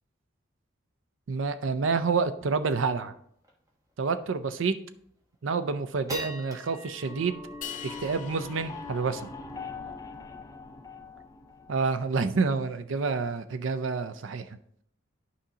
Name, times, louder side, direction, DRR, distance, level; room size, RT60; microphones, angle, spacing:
voice 1, 1.3-3.1 4.0-4.8 5.4-7.4 7.8-9.3 11.7-14.6, right 4 dB, 70° right, 10 dB, 0.5 m, -28 dB
sound 1, 2.6-2.7 2.9-3.0 3.4-3.7 4.2-4.3 4.8-5.2 5.6-12.2, equal, 15° right, 1.1 m, -45 dB
sound 2, 7.0-12.1, left 4 dB, 15° left, 0.3 m, -43 dB
sound 3, 7.6-9.9, left 9 dB, 40° left, 1.0 m, -44 dB
11.5 x 5.1 x 2.8 m, 0.67 s
head